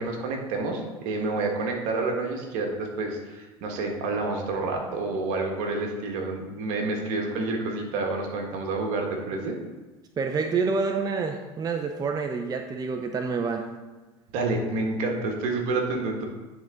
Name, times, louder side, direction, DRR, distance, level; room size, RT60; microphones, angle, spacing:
voice 1, 0.0-9.5 14.3-16.2, right 3 dB, 65° right, 2 dB, 1.5 m, -29 dB
voice 2, 10.2-13.7, right 4 dB, 30° right, 5 dB, 0.6 m, -27 dB
9.9 x 3.9 x 3.7 m, 1.2 s
hypercardioid pair, 80°, 14 cm